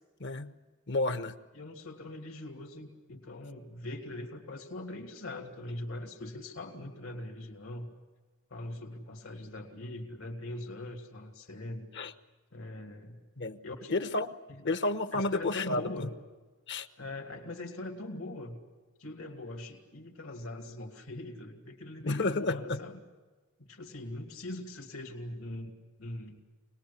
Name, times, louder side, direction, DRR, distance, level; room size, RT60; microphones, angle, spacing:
voice 1, 0.2-0.5 0.9-1.4 11.9-12.1 13.4-13.6 13.9-14.3 14.6-16.1 16.7-16.9 22.0-22.8, left 2 dB, 55° left, 10 dB, 1.1 m, -31 dB
voice 2, 1.5-7.9 8.5-11.9 12.5-13.3 13.6-13.9 14.5-14.6 15.1-16.2 17.0-18.6 19.0-23.0 23.6-25.7 26.0-26.4, left 1 dB, 75° left, 2 dB, 2.8 m, -42 dB
25.5 x 20.0 x 8.5 m, 1.3 s
head